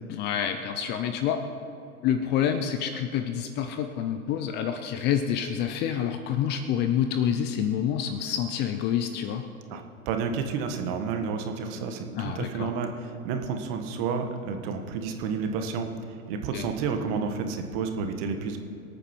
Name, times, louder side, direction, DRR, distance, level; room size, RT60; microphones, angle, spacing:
voice 1, 0.1-1.4 2.0-9.4 12.1-12.7 16.5-16.7, left 9 dB, 25° left, 8 dB, 0.6 m, -27 dB
voice 2, 9.7-15.9 16.3-18.6, right 5 dB, 40° right, 5 dB, 1.7 m, -30 dB
23.5 x 9.0 x 4.6 m, 2.7 s
hypercardioid pair, 115°, 43 cm